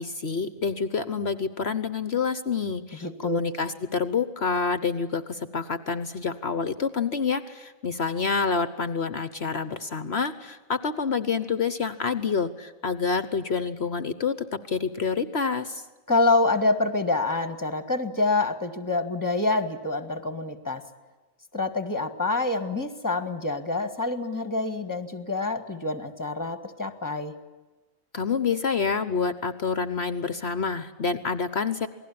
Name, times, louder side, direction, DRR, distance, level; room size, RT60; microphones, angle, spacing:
voice 1, 0.0-15.8 28.1-31.9, left 5 dB, 50° left, 12 dB, 1.2 m, -28 dB
voice 2, 3.0-3.4 16.1-20.8 21.5-27.3, left 2 dB, 15° left, 9 dB, 1.9 m, -26 dB
28.0 x 19.5 x 8.6 m, 1.2 s
omnidirectional pair, 1.5 m